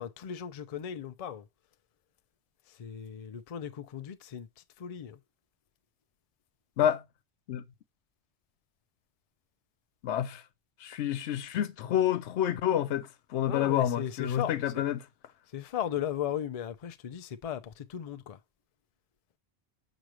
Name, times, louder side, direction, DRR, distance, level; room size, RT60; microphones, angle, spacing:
voice 1, 0.0-1.4 2.8-4.5 4.8-5.2 13.5-14.9 15.5-18.4, left 10 dB, 45° left, 0.5 m, -36 dB
voice 2, 10.0-10.4 10.8-15.0, left 10 dB, 90° left, 0.9 m, -28 dB
6.4 x 5.0 x 3.0 m
omnidirectional pair, 1.1 m